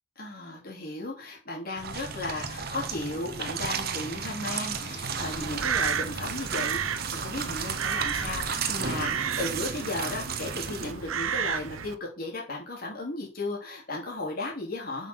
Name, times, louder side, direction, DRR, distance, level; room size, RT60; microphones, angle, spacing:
voice 1, 0.1-15.1, left 2 dB, 45° left, -2 dB, 3.4 m, -35 dB
sound 1, 1.8-10.9, right 6 dB, 50° right, 1.1 m, -34 dB
Crow, 5.1-11.9, right 7 dB, 80° right, 0.8 m, -32 dB
7.3 x 6.5 x 6.1 m, 0.36 s
head